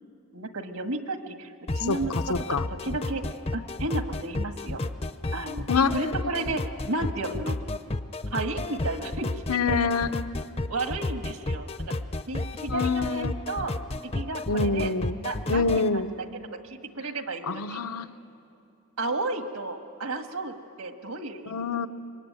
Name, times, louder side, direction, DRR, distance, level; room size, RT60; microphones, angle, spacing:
voice 1, 0.3-2.1 2.5-2.6 2.8-3.2 3.5-4.8 5.3-5.7 5.9-7.6 8.3-9.4 9.7-9.8 10.7-11.9 12.3-13.7 14.0-14.9 15.2-16.1 16.6-17.8 19.0-21.9, right 2 dB, 80° right, 6 dB, 1.7 m, -33 dB
sound 1, 1.7-15.9, left 2 dB, 25° left, 0.5 m, -32 dB
voice 2, 1.9-2.7 5.7-6.2 9.5-10.3 12.7-13.3 14.5-15.2 15.5-16.1 17.4-18.2 21.4-21.9, left 4 dB, 85° left, 10 dB, 0.9 m, -26 dB
25.5 x 22.5 x 9.7 m, 2.7 s
head